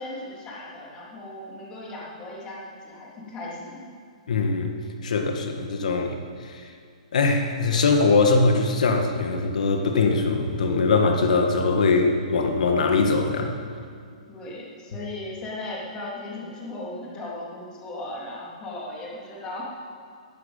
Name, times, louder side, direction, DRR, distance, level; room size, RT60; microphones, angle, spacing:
voice 1, 0.0-3.9 14.3-19.6, left 2 dB, 20° left, -4 dB, 3.4 m, -37 dB
voice 2, 4.3-4.7 5.0-6.1 6.4-6.6 7.1-13.6, left 3 dB, 75° left, 4 dB, 2.0 m, -21 dB
13.5 x 11.0 x 9.1 m, 2.2 s
hypercardioid pair, 160°, 4 cm